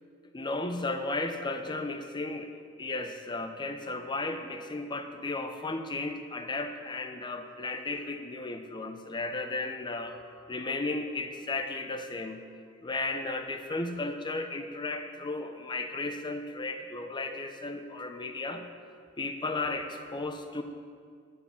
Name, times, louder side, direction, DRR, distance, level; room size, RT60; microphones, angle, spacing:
voice 1, 0.3-12.5 12.8-18.6 19.2-20.6, left 2 dB, 20° left, 7 dB, 0.6 m, -34 dB
9.3 x 8.4 x 5.7 m, 2.2 s
head